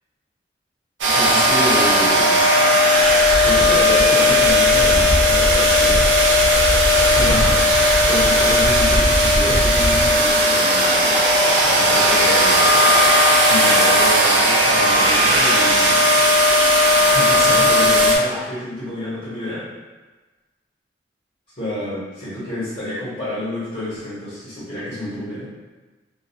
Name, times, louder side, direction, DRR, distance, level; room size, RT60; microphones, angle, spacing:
voice 1, 1.0-2.5 3.2-6.2 7.1-12.9 13.5-16.6 17.0-19.7 21.6-25.5, left 1 dB, 40° left, -13 dB, 1.1 m, -28 dB
sound 1, 1.0-18.2, left 1 dB, 80° right, 0.5 m, -15 dB
2.5 x 2.2 x 2.7 m, 1.3 s
head